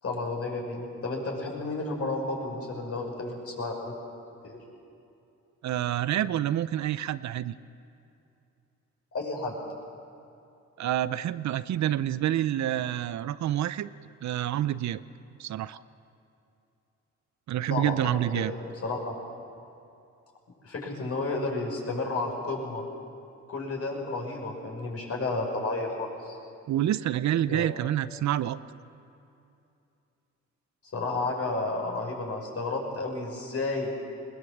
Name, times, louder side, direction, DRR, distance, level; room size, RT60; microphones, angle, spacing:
voice 1, 0.0-3.9 4.4-4.6 9.1-9.6 17.7-19.1 20.6-22.8 23.5-26.4 27.5-27.7 30.9-33.9, left 2 dB, 55° left, -1 dB, 5.8 m, -32 dB
voice 2, 5.6-7.5 10.8-13.9 14.2-15.0 15.4-15.8 17.5-18.5 26.7-28.6, right 12 dB, 70° right, 15 dB, 0.6 m, -28 dB
21.0 x 19.5 x 7.4 m, 2.7 s
cardioid pair, 75°, 29 cm